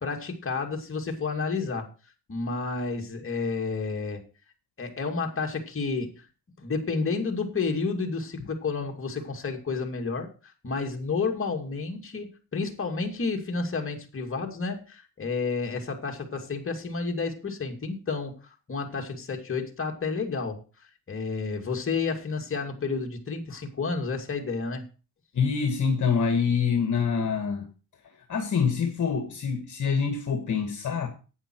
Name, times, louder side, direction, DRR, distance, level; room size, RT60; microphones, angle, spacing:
voice 1, 0.0-1.9 2.3-4.2 4.8-6.2 6.6-18.4 18.7-20.6 21.1-24.9, left 4 dB, 35° left, 2.4 m, -30 dB
voice 2, 25.3-27.7 28.3-31.1, left 6 dB, 50° left, 1.9 m, -25 dB
11.0 x 8.9 x 4.7 m
cardioid pair, 95°, 38 cm